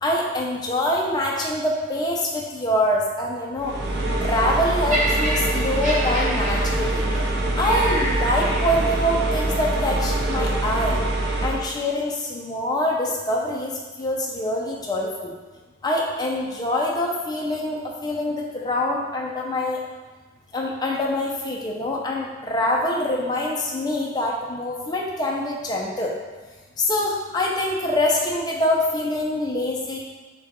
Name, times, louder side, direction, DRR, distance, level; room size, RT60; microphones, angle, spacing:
voice 1, 0.0-3.7 4.2-7.0 7.6-11.0 11.4-13.7 14.0-15.3 15.8-19.8 20.5-26.1 26.8-30.0, left 1 dB, 20° left, -2 dB, 0.5 m, -25 dB
sound 1, 3.6-11.7, right 2 dB, 55° right, 0.4 m, -24 dB
Laughter, 4.9-9.1 9.9-10.1, right 1 dB, 40° right, 0.9 m, -29 dB
5.9 x 2.3 x 2.9 m, 1.4 s
head